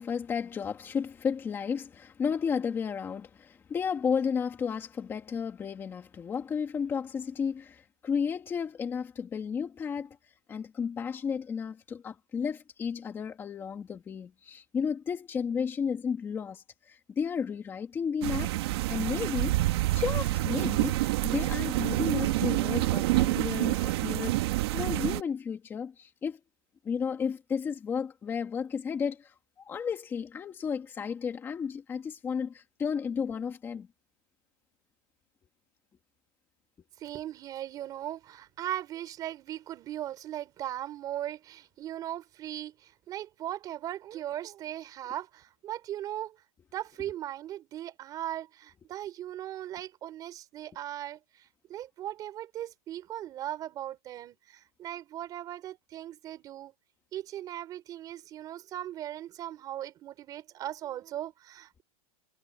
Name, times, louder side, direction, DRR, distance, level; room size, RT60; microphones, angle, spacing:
voice 1, 0.0-10.2 10.5-18.6 18.9-19.6 19.9-26.4 26.8-33.9, left 6 dB, 10° left, 2.2 m, -33 dB
sound 1, 18.2-25.2, right 18 dB, 45° right, 2.2 m, -27 dB
voice 2, 37.0-46.4 46.7-56.7 57.1-61.8, right 12 dB, 20° right, 3.9 m, -38 dB
supercardioid pair, 175°, 19 cm